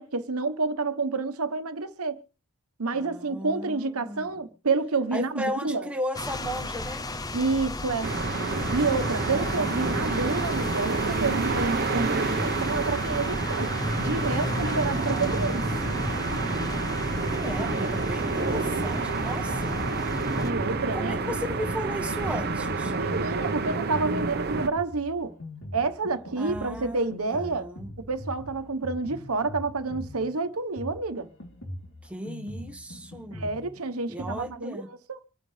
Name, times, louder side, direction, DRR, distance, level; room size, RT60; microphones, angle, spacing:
voice 1, 0.0-2.2 2.8-5.9 7.3-8.1 8.7-15.7 20.2-21.2 22.9-25.3 25.7-27.7 28.0-31.3 33.3-35.2, right 3 dB, 80° right, 1.1 m, -29 dB
voice 2, 2.9-4.5 5.1-7.1 9.1-10.1 14.7-15.6 17.4-19.8 20.6-22.9 26.4-27.9 32.0-33.5 34.1-34.9, equal, 5° right, 1.3 m, -36 dB
sound 1, 6.1-20.5, left 2 dB, 15° left, 0.6 m, -33 dB
sound 2, 8.0-24.7, right 3 dB, 45° right, 0.9 m, -29 dB
Drum kit, 17.0-34.5, left 1 dB, 65° left, 3.2 m, -42 dB
26.0 x 9.4 x 3.3 m
head